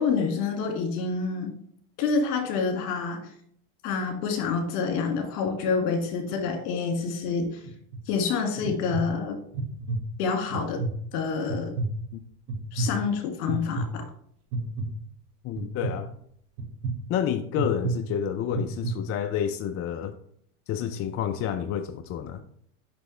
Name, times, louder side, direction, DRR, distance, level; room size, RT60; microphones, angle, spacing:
voice 1, 0.0-1.5 2.0-3.3 3.8-7.6 8.1-9.4 10.2-10.8 11.1-11.7 12.7-14.0, left 5 dB, 65° left, 3 dB, 2.1 m, -27 dB
sound 1, 7.6-8.0 8.6-9.0 9.5-10.0 10.5-10.9 11.5-11.9 12.5-12.9 13.5-13.9 14.5-14.9 15.6-15.9 16.6-16.9 17.6-17.9 18.5-18.9, right 3 dB, 50° right, 1.6 m, -29 dB
voice 2, 15.4-16.1 17.1-20.1 20.7-22.4, left 9 dB, 30° left, 7 dB, 0.5 m, -29 dB
6.0 x 6.0 x 3.2 m, 0.63 s
supercardioid pair, 110°, 46 cm